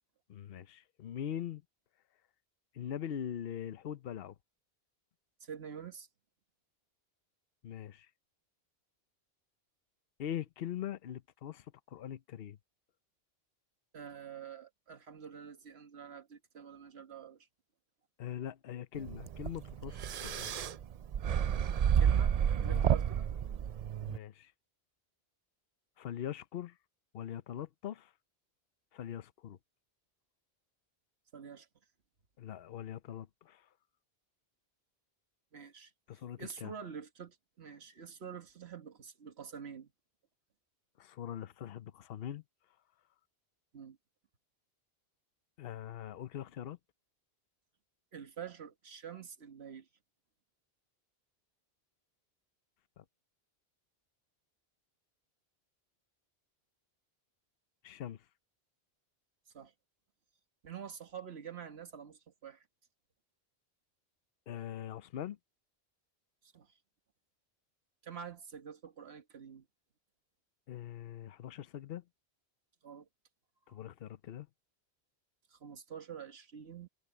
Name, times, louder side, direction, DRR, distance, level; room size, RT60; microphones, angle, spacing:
voice 1, 0.3-1.6 2.7-4.4 7.6-8.1 10.2-12.6 18.2-20.5 22.6-22.9 24.0-24.5 26.0-26.8 27.1-28.1 28.9-29.6 32.4-33.7 36.1-36.7 41.0-42.4 45.6-46.8 53.0-53.1 57.8-58.2 64.5-65.4 70.7-72.0 73.7-74.5, left 10 dB, 70° left, 0.9 m, -42 dB
voice 2, 5.4-6.1 13.9-17.5 21.9-23.3 31.3-31.7 35.5-39.9 43.7-44.0 48.1-49.9 59.5-59.7 60.6-62.7 66.4-66.8 68.0-69.6 72.8-73.1 73.7-73.8 75.5-76.9, right 7 dB, 80° right, 1.6 m, -47 dB
sound 1, 19.0-24.2, right 8 dB, 55° right, 0.4 m, -30 dB
omnidirectional pair, 1.1 m